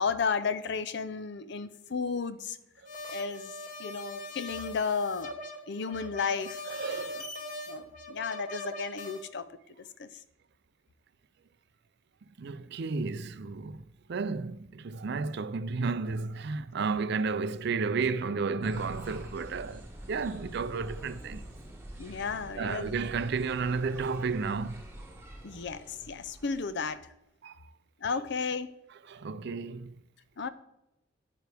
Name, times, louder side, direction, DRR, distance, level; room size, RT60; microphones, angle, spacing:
voice 1, 0.0-2.6 3.1-3.5 3.8-5.3 5.7-6.6 7.7-9.5 10.0-10.1 22.0-22.9 25.4-27.0 28.0-28.7 30.4-30.5, left 5 dB, 60° left, 0.6 m, -33 dB
sound 1, 2.9-9.2, left 1 dB, 40° left, 1.4 m, -41 dB
voice 2, 6.7-7.3 12.4-13.8 14.1-19.8 20.1-21.5 22.5-24.8 27.4-27.6 29.1-29.9, right 4 dB, 55° right, 0.4 m, -32 dB
sound 2, 18.6-27.0, right 1 dB, 10° right, 1.4 m, -46 dB
9.3 x 9.2 x 3.4 m
head